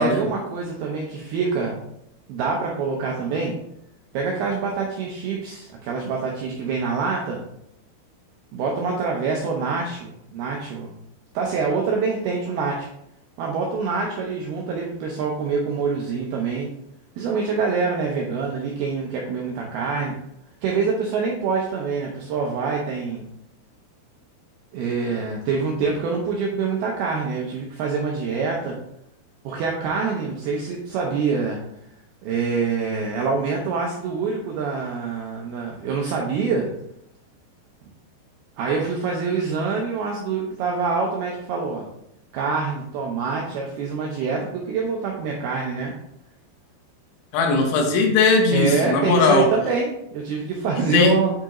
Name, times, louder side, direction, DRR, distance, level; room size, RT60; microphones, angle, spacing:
voice 1, 0.0-1.8 2.3-3.5 4.1-7.4 8.5-10.9 11.3-12.9 13.4-16.7 17.2-20.1 20.6-23.2 24.7-28.8 29.5-31.6 32.2-36.7 38.6-41.9 42.3-45.9 48.5-51.3, right 4 dB, 85° right, 0 dB, 2.2 m, -25 dB
voice 2, 47.3-49.5 50.9-51.1, left 4 dB, 80° left, 3 dB, 3.4 m, -18 dB
8.4 x 4.6 x 3.0 m, 0.78 s
omnidirectional pair, 5.4 m